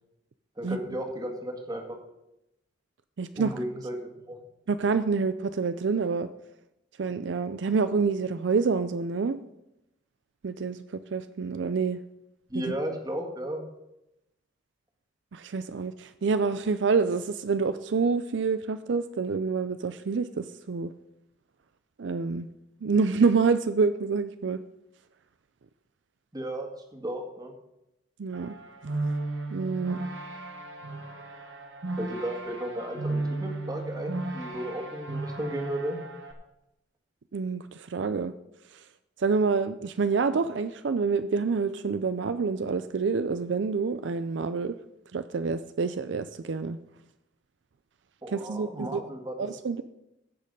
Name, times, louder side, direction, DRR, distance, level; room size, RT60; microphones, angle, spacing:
voice 1, 0.6-2.0 3.3-4.4 12.5-13.6 26.3-27.5 32.0-36.0 48.2-49.5, right 1 dB, 20° right, 3 dB, 1.8 m, -34 dB
voice 2, 3.2-3.5 4.7-6.3 7.0-9.4 10.4-10.8 11.1-12.0 15.3-20.9 22.0-22.5 22.8-24.6 28.2-28.5 29.5-30.0 37.3-38.3 39.2-44.8 45.1-46.8 48.3-49.0 49.4-49.8, right 4 dB, 70° right, 12 dB, 0.5 m, -27 dB
sound 1, 28.3-36.3, right 2 dB, 90° right, 1.7 m, -35 dB
15.5 x 6.5 x 5.3 m, 0.87 s
head